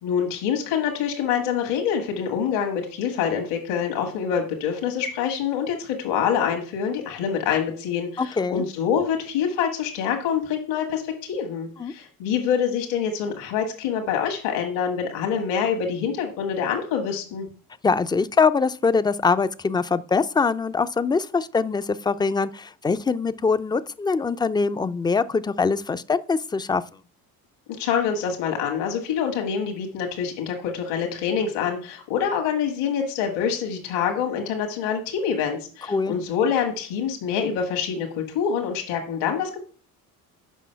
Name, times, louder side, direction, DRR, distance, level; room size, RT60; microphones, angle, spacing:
voice 1, 0.0-17.5 27.8-39.6, left 7 dB, 70° left, 1.6 m, -26 dB
voice 2, 8.2-8.6 11.8-11.9 17.8-26.8 35.9-36.2, left 4 dB, 10° left, 0.3 m, -23 dB
6.3 x 5.4 x 5.6 m
hypercardioid pair, 60°, 44 cm